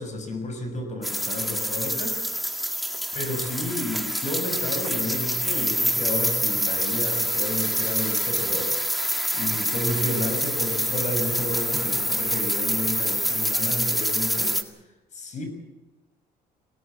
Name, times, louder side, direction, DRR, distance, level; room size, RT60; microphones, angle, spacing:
voice 1, 0.0-2.2 3.1-8.8 9.3-14.6 15.1-15.5, left 1 dB, 45° left, 7 dB, 6.7 m, -31 dB
sound 1, 1.0-14.6, equal, ahead, 1.9 m, -26 dB
23.5 x 18.0 x 7.7 m, 1.0 s
cardioid pair, 110°, 17 cm